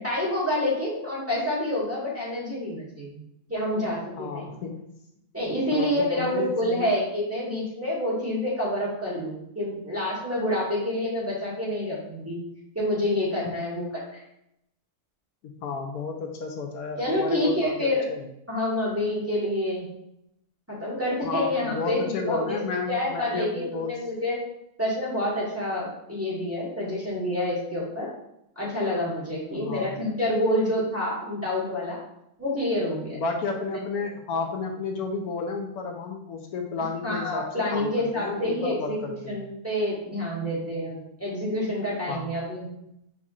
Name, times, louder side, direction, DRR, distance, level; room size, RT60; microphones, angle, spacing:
voice 1, 0.0-3.2 3.5-4.4 5.3-12.4 12.7-14.2 17.0-18.0 18.5-19.9 20.7-22.6 22.9-24.4 24.8-28.1 28.5-32.0 32.4-33.2 37.0-42.7, left 1 dB, 10° right, -7 dB, 1.3 m, -28 dB
voice 2, 4.2-4.8 5.7-6.9 13.4-13.5 15.4-18.3 21.2-24.0 29.5-30.0 33.1-39.4 42.1-42.3, left 4 dB, 80° left, 3 dB, 1.1 m, -32 dB
5.5 x 3.6 x 2.4 m, 0.81 s
omnidirectional pair, 1.6 m